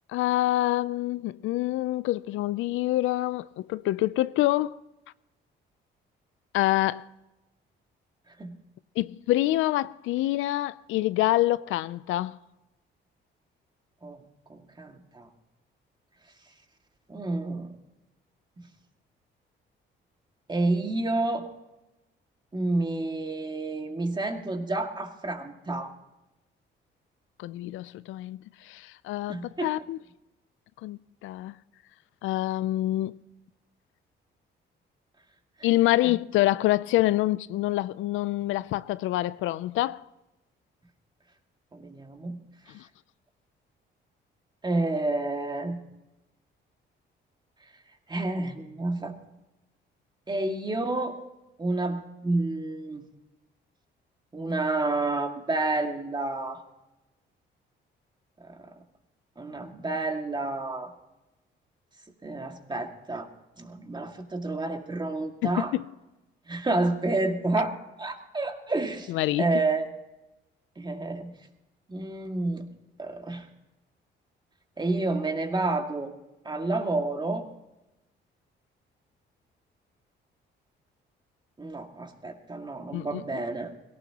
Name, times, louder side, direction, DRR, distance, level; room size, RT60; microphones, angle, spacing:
voice 1, 0.1-4.8 6.5-7.1 9.0-12.4 27.4-30.0 30.8-31.5 32.2-33.1 35.6-40.0 42.7-42.9 65.4-65.8 69.1-69.4 82.9-83.4, left 16 dB, 90° left, 0.5 m, -26 dB
voice 2, 14.5-15.3 17.1-17.7 20.5-21.5 22.5-25.9 29.3-29.7 41.7-42.4 44.6-45.8 48.1-49.2 50.3-51.2 51.6-53.0 54.3-56.6 58.4-58.7 59.4-60.9 62.2-63.3 63.6-65.7 66.5-69.1 69.4-69.9 70.8-71.3 71.9-72.7 73.0-73.5 74.8-76.1 76.4-77.4 81.6-83.7, right 2 dB, 20° right, 2.1 m, -29 dB
18.5 x 17.5 x 2.9 m
cardioid pair, 90°, 20 cm